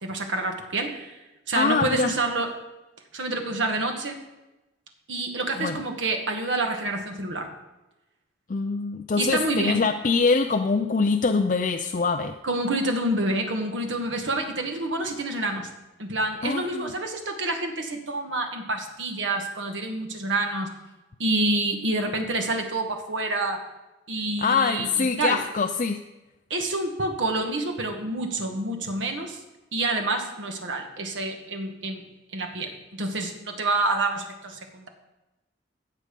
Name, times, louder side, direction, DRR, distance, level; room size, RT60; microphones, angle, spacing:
voice 1, 0.0-1.2 1.5-2.5 3.1-4.2 5.1-7.5 9.2-9.8 12.4-15.7 16.0-20.7 21.2-23.6 24.1-25.4 26.5-29.4 29.7-32.0 32.3-34.9, right 2 dB, 85° right, 4 dB, 1.6 m, -28 dB
voice 2, 1.5-2.1 5.6-5.8 8.5-12.3 16.4-16.9 24.4-26.0, left 4 dB, 45° left, 5 dB, 0.4 m, -24 dB
16.0 x 6.6 x 5.3 m, 1.0 s
head